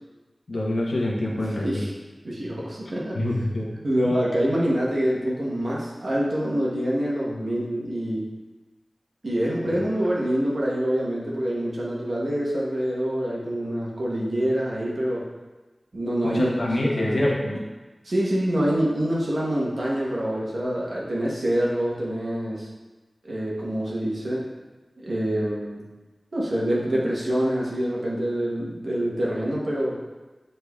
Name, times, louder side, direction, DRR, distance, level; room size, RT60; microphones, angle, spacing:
voice 1, 0.5-1.8 3.1-3.7 4.0-4.1 9.7-9.8 16.2-17.6, left 1 dB, 85° left, -3 dB, 0.8 m, -26 dB
voice 2, 1.3-1.9 2.2-3.2 3.8-8.2 9.2-15.3 15.9-16.5 16.8-17.1 18.0-22.7 23.2-24.5 25.0-25.8 26.3-30.0, equal, 75° right, -5 dB, 1.0 m, -26 dB
6.4 x 3.3 x 2.3 m, 1.2 s
wide cardioid pair, 50°, 0 cm